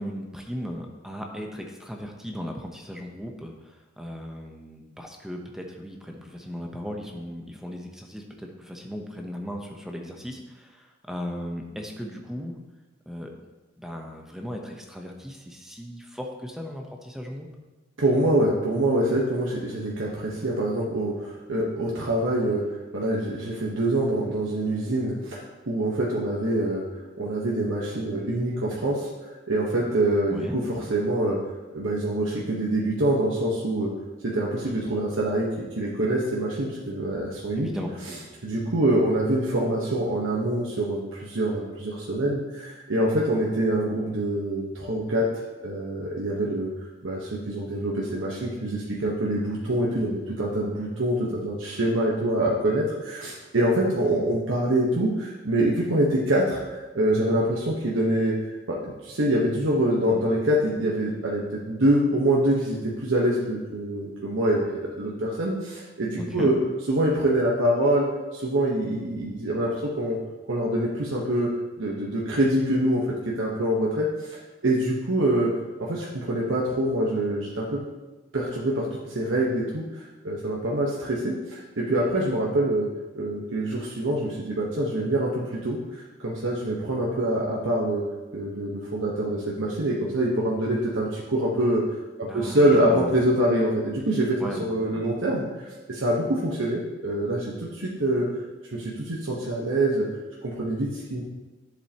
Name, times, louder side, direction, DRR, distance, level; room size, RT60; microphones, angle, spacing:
voice 1, 0.0-12.6 13.1-13.3 13.8-17.5 30.3-30.6 37.6-38.3 66.2-66.5 92.2-93.2 94.4-95.1, equal, ahead, 1 dB, 0.8 m, -37 dB
voice 2, 18.0-22.6 22.9-26.8 27.2-31.4 31.7-33.9 34.2-35.5 35.8-37.7 38.4-45.3 45.6-46.7 47.0-58.3 58.7-66.5 66.9-68.1 68.3-70.2 70.5-71.5 71.8-75.5 75.8-77.8 78.3-82.9 83.1-88.0 88.3-91.8 92.2-98.3 98.7-100.1 100.4-101.2, right 1 dB, 85° right, -4 dB, 1.2 m, -25 dB
10.5 x 7.4 x 2.9 m, 1.2 s
head